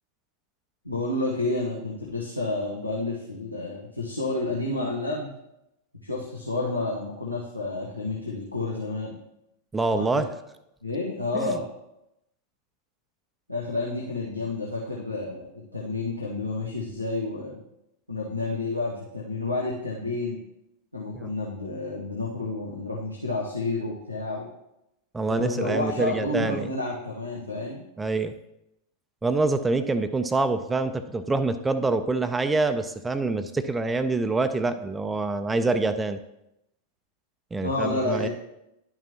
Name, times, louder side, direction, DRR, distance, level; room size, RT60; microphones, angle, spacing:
voice 1, 0.8-5.3 6.0-9.2 9.9-10.2 10.8-11.6 13.5-17.6 18.1-20.4 20.9-24.5 25.3-27.8 37.6-38.3, left 2 dB, 90° left, -5 dB, 1.1 m, -30 dB
voice 2, 9.7-10.3 11.3-11.5 21.2-21.3 25.1-26.7 28.0-28.3 29.2-36.2 37.5-38.3, right 3 dB, 10° right, 10 dB, 0.4 m, -26 dB
11.0 x 5.9 x 2.9 m, 0.85 s
figure-of-eight pair, 90°, 0 cm